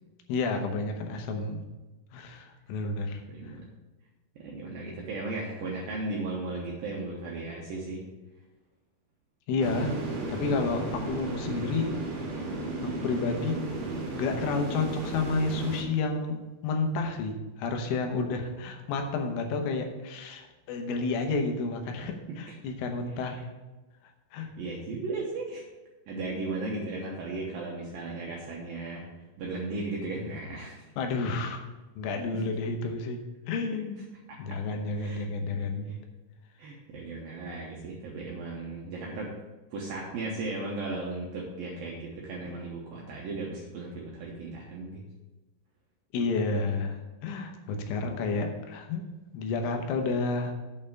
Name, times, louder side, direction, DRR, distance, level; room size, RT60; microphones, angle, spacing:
voice 1, 0.3-1.6 2.1-3.2 9.5-10.0 10.3-12.0 12.8-13.6 14.1-23.4 24.3-24.5 31.0-31.6 32.0-33.2 33.5-34.0 34.4-36.0 46.1-49.0 49.3-50.5, left 3 dB, 85° left, 4 dB, 3.6 m, -30 dB
voice 2, 3.3-3.7 4.4-8.0 23.3-23.4 24.3-25.6 26.1-29.0 29.4-30.8 32.3-32.4 34.3-34.6 34.9-36.0 36.6-39.3 39.7-45.0, right 2 dB, 70° right, -3 dB, 2.2 m, -36 dB
sound 1, 9.6-15.8, right 2 dB, 55° right, 2.9 m, -34 dB
7.9 x 5.5 x 6.8 m, 1.1 s
omnidirectional pair, 5.6 m